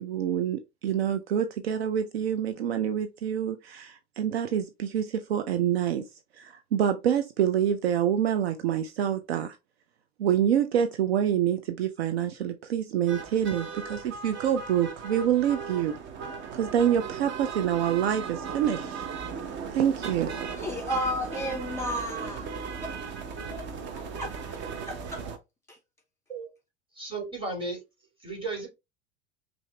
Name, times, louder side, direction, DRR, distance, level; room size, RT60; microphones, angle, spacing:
voice 1, 0.0-6.0 6.4-9.5 10.2-16.0 16.5-19.1 19.7-20.5, right 9 dB, 65° right, 0.6 m, -26 dB
sound 1, 13.1-25.4, right 6 dB, 35° right, 0.9 m, -37 dB
voice 2, 20.5-22.5 22.8-22.9 23.5-24.3 24.8-25.2 25.7-25.8, equal, 10° left, 2.2 m, -33 dB
voice 3, 26.9-27.8 28.2-28.7, right 3 dB, 15° right, 2.9 m, -34 dB
5.5 x 2.8 x 3.1 m
figure-of-eight pair, 75°, 34 cm